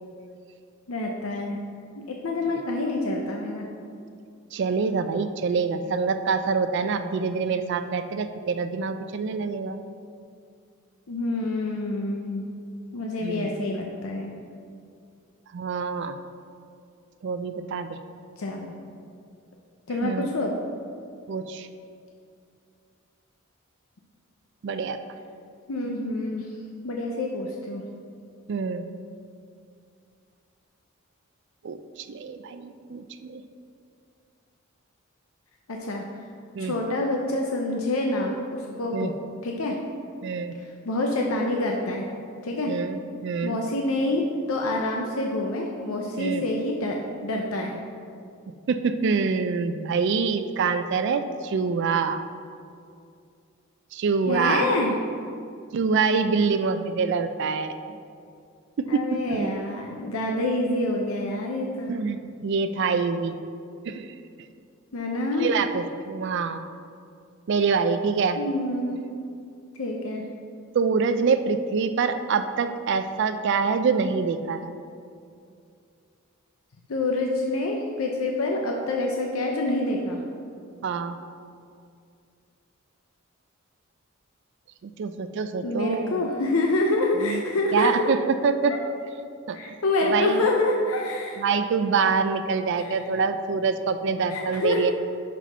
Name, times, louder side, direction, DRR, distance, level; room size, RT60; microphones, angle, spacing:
voice 1, 0.9-1.6 2.1-3.7 11.1-12.5 12.9-14.3 18.4-18.8 19.9-20.5 25.7-26.5 26.8-27.8 35.7-36.0 36.6-39.1 39.4-39.8 40.6-42.1 42.4-42.7 43.4-47.8 54.3-55.0 58.9-62.1 64.9-65.5 68.4-69.0 69.8-70.3 76.9-80.2 85.6-88.1 88.7-88.8 89.5-91.4 92.8-93.0 94.3-94.9, left 2 dB, 85° left, 0 dB, 0.6 m, -27 dB
voice 2, 4.5-9.8 13.2-13.5 15.5-16.1 17.2-18.0 20.0-20.3 21.3-21.7 24.6-25.0 28.5-28.8 31.6-33.4 36.5-36.7 38.9-39.1 40.2-40.5 42.7-43.6 46.2-46.4 48.7-52.2 53.9-54.7 55.7-58.0 58.8-59.6 61.9-63.4 63.8-64.1 65.4-66.6 67.5-68.4 70.7-74.7 80.8-81.2 84.8-86.2 87.2-87.4 87.7-88.8 89.5-89.6 90.0-90.5 91.4-94.9, right 5 dB, 55° right, 9 dB, 0.3 m, -25 dB
5.7 x 5.0 x 5.4 m, 2.4 s
head